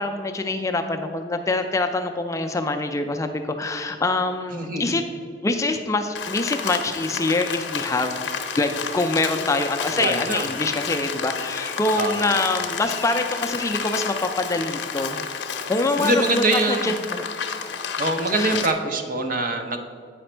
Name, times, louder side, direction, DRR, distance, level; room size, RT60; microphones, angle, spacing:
voice 1, 0.0-5.0 5.4-8.2 8.6-15.3 15.7-16.1 16.7-17.3 18.4-18.6, left 2 dB, 15° left, 6 dB, 0.3 m, -25 dB
voice 2, 4.5-5.0 10.0-10.5 11.9-12.4 16.0-17.0 18.0-19.8, right 2 dB, 50° right, 5 dB, 0.7 m, -24 dB
Rain, 6.2-18.7, left 6 dB, 75° left, 0.6 m, -30 dB
8.6 x 5.1 x 4.4 m, 2.1 s
head